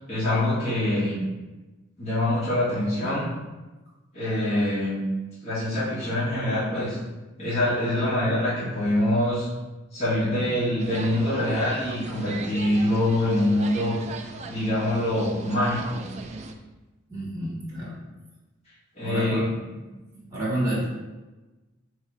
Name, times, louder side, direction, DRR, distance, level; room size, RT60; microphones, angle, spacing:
voice 1, 0.1-1.2 2.0-3.3 4.1-5.0 5.4-7.0 7.4-9.5 9.9-14.0 14.5-16.0 19.0-19.4, left 1 dB, 35° left, -12 dB, 1.3 m, -24 dB
sound 1, 10.8-16.5, right 3 dB, 35° right, 0.3 m, -39 dB
voice 2, 17.1-18.0 19.0-19.4 19.8-20.0 20.3-20.9, right 1 dB, 15° right, -6 dB, 1.2 m, -29 dB
3.4 x 2.8 x 4.6 m, 1.1 s
head